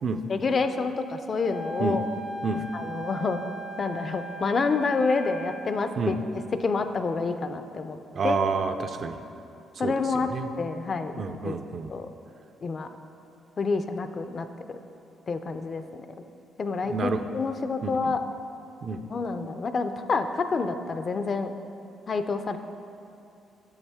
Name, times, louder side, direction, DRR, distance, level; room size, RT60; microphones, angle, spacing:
voice 1, 0.3-2.0 2.7-3.4 3.8-6.1 6.6-8.0 8.2-8.4 9.8-10.3 10.6-11.1 11.4-11.6 11.9-12.1 12.6-12.9 13.6-14.8 15.3-15.8 16.6-18.2 19.1-21.5 22.1-22.6, left 4 dB, 40° left, 9 dB, 0.4 m, -28 dB
Wind instrument woodwind instrument, 1.4-5.8, right 1 dB, 80° left, 0.7 m, -38 dB
voice 2, 8.1-9.2 9.8-10.5 11.1-11.9 16.9-17.2 17.8-18.1 18.8-19.0, right 4 dB, 50° right, 8 dB, 0.4 m, -29 dB
7.1 x 6.3 x 3.4 m, 2.7 s
cardioid pair, 90°, 0 cm